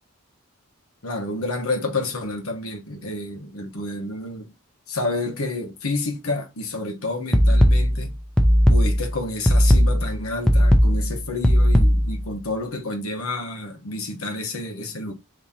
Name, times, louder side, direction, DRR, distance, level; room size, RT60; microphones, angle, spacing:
voice 1, 1.0-4.5 4.9-8.1 8.7-15.1, left 2 dB, 90° left, 1.2 m, -29 dB
sound 1, 7.3-12.3, equal, 5° left, 0.5 m, -17 dB
3.7 x 3.0 x 4.2 m
head